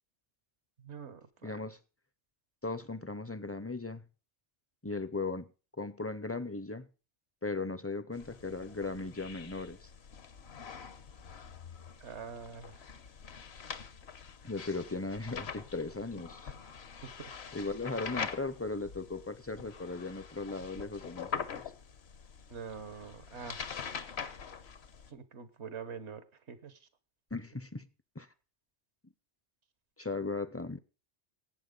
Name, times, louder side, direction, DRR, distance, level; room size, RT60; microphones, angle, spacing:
voice 1, 0.8-1.6 12.0-12.8 17.0-17.6 22.5-23.7 25.1-26.9, right 6 dB, 80° right, 1.5 m, -45 dB
voice 2, 1.4-1.8 2.6-4.0 4.8-5.5 5.8-6.9 7.4-9.9 14.4-16.5 17.5-21.5 27.3-27.9 28.2-28.3 30.0-30.8, left 3 dB, 20° left, 0.4 m, -37 dB
sound 1, 8.1-25.1, left 6 dB, 70° left, 1.2 m, -44 dB
18.0 x 8.8 x 3.8 m
omnidirectional pair, 1.1 m